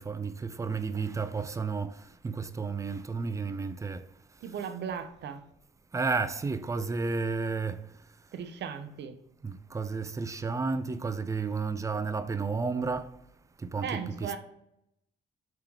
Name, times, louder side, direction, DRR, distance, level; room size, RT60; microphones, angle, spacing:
voice 1, 0.0-4.0 5.9-7.9 9.4-13.2 13.6-14.4, right 4 dB, 15° right, 0.3 m, -32 dB
voice 2, 4.4-5.4 8.3-9.2 13.8-14.4, right 7 dB, 55° right, 0.7 m, -37 dB
3.5 x 3.4 x 3.0 m
supercardioid pair, 75°, 21 cm